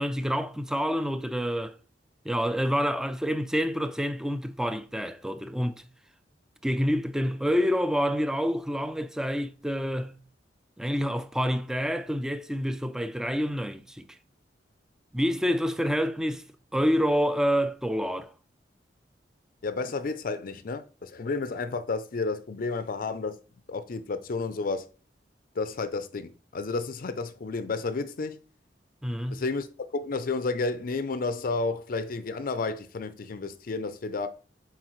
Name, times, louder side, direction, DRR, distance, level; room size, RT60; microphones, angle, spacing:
voice 1, 0.0-1.8 2.3-5.8 6.6-10.1 10.8-14.1 15.1-16.4 16.7-18.3 29.0-29.4, equal, 5° right, 0.4 m, -27 dB
voice 2, 19.6-23.4 23.7-24.9 25.5-28.4 29.3-34.3, left 3 dB, 50° left, 0.5 m, -31 dB
7.6 x 4.6 x 3.1 m
head